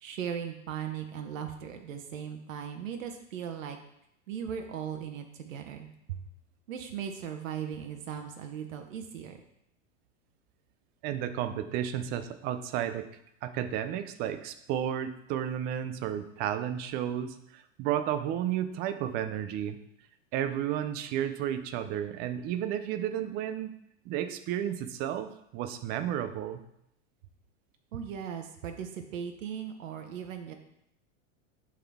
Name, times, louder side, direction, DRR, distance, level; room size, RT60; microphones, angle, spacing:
voice 1, 0.0-3.8 4.3-6.2 6.7-9.4 27.9-30.5, right 8 dB, 85° right, 5 dB, 1.0 m, -38 dB
voice 2, 11.0-13.1 13.4-19.8 20.3-23.7 24.1-26.6, right 10 dB, 25° right, 10 dB, 0.4 m, -32 dB
11.0 x 3.9 x 3.5 m, 0.77 s
supercardioid pair, 140°, 38 cm